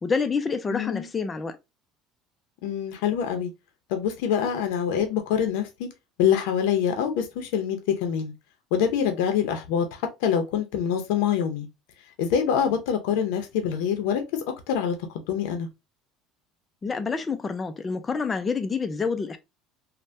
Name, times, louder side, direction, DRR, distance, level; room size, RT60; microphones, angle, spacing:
voice 1, 0.0-1.6 16.8-19.4, left 5 dB, 20° left, 0.4 m, -27 dB
voice 2, 0.7-1.1 2.6-3.5 3.9-5.9 6.2-8.3 8.7-11.7 12.2-14.2 14.7-15.7, left 8 dB, 85° left, 0.6 m, -25 dB
3.3 x 2.1 x 2.6 m
cardioid pair, 140°, 0 cm